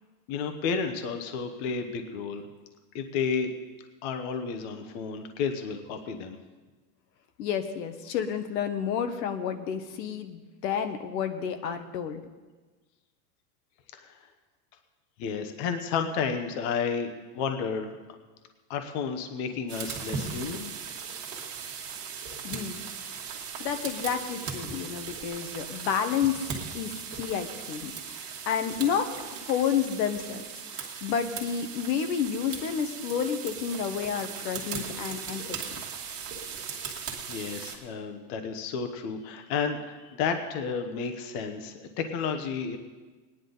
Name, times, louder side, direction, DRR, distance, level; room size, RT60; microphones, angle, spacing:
voice 1, 0.3-2.4 2.9-3.5 4.0-6.4 14.0-14.2 15.2-18.0 18.7-20.7 37.3-42.8, left 6 dB, 40° left, 6 dB, 0.9 m, -31 dB
voice 2, 7.4-12.2 22.4-23.2 23.6-30.4 30.7-35.8, left 8 dB, 80° left, 7 dB, 1.3 m, -30 dB
sound 1, 19.7-37.8, right 6 dB, 30° right, 1.6 m, -38 dB
19.0 x 10.0 x 3.9 m, 1.3 s
supercardioid pair, 175°, 49 cm